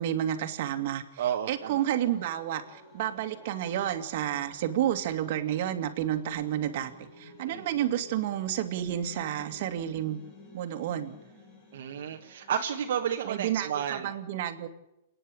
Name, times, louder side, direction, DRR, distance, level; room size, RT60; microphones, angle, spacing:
voice 1, 0.0-10.2 10.5-11.2 13.3-14.7, right 11 dB, 50° right, 6 dB, 2.3 m, -30 dB
voice 2, 1.2-1.8 7.4-7.6 11.7-14.1, right 9 dB, 65° right, 2 dB, 1.6 m, -31 dB
sound 1, 1.5-12.6, left 2 dB, 25° left, 5.4 m, -52 dB
30.0 x 10.0 x 8.9 m, 0.86 s
hypercardioid pair, 160°, 0 cm